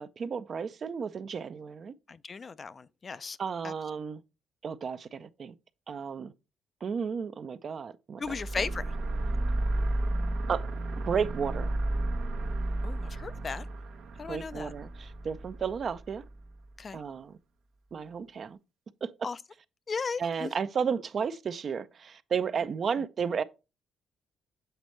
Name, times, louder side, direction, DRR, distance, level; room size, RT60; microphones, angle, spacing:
voice 1, 0.0-1.9 3.4-4.2 4.6-5.5 5.9-6.3 6.8-8.3 10.5-10.7 11.1-11.8 14.3-16.2 16.9-17.4 17.9-18.6 19.0-19.1 20.2-23.4, right 6 dB, 50° right, 0.4 m, -33 dB
voice 2, 2.1-3.4 3.6-3.7 8.2-8.9 12.8-13.7 14.2-14.7 16.8-17.0 19.2-19.4 19.9-20.5, left 5 dB, 40° left, 0.3 m, -36 dB
sound 1, 8.2-16.6, right 2 dB, 85° right, 1.0 m, -32 dB
7.9 x 4.1 x 3.1 m
cardioid pair, 90°, 0 cm